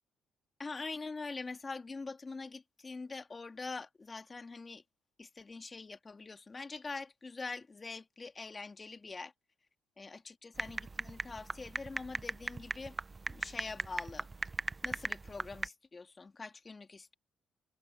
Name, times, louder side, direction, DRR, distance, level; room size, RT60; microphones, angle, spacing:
voice 1, 0.6-4.8 5.2-9.3 10.0-13.0 13.3-14.3 14.8-17.2, left 3 dB, 30° left, 2.3 m, -44 dB
sound 1, 10.6-15.7, right 3 dB, 30° right, 0.8 m, -38 dB
supercardioid pair, 65°, 0 cm